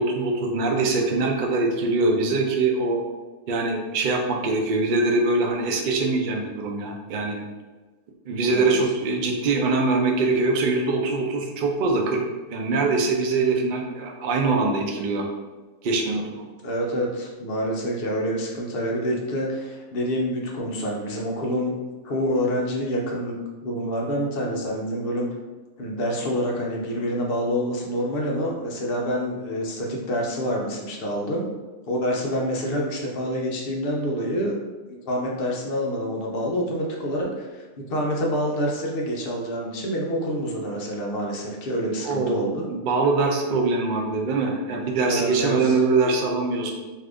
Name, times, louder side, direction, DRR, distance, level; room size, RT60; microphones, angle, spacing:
voice 1, 0.0-3.0 3.5-7.4 8.3-12.2 12.5-15.3 15.8-16.5 42.0-46.7, right 3 dB, 85° right, 1 dB, 0.4 m, -23 dB
voice 2, 16.6-21.7 22.0-23.3 23.6-25.3 25.8-31.5 31.9-34.6 35.0-42.7 45.0-45.8, equal, 55° left, -1 dB, 0.7 m, -27 dB
2.7 x 2.4 x 3.4 m, 1.3 s
omnidirectional pair, 1.5 m